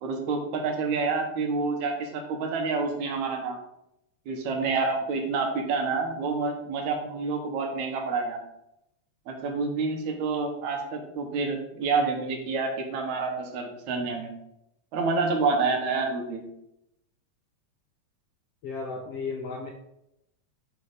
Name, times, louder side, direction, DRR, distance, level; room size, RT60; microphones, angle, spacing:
voice 1, 0.0-3.6 4.3-8.4 9.3-14.3 14.9-16.4, right 4 dB, 70° right, 2 dB, 2.3 m, -28 dB
voice 2, 18.6-19.7, left 4 dB, 75° left, 1 dB, 1.4 m, -34 dB
7.0 x 4.6 x 4.9 m, 0.83 s
omnidirectional pair, 3.5 m